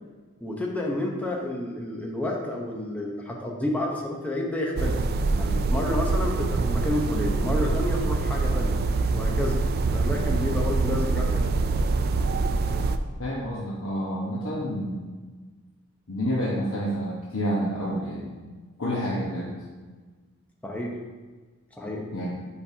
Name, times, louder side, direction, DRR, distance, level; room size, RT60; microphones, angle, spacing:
voice 1, 0.4-5.0 5.3-8.8 9.1-9.6 9.9-11.5 20.6-21.0 21.8-22.1, left 1 dB, 5° left, -1 dB, 0.8 m, -30 dB
sound 1, 4.8-13.0, right 3 dB, 45° right, 0.3 m, -25 dB
voice 2, 13.2-15.1 16.1-18.3 18.8-19.5 22.1-22.3, equal, 70° left, -6 dB, 1.1 m, -29 dB
8.4 x 5.3 x 2.8 m, 1.4 s
head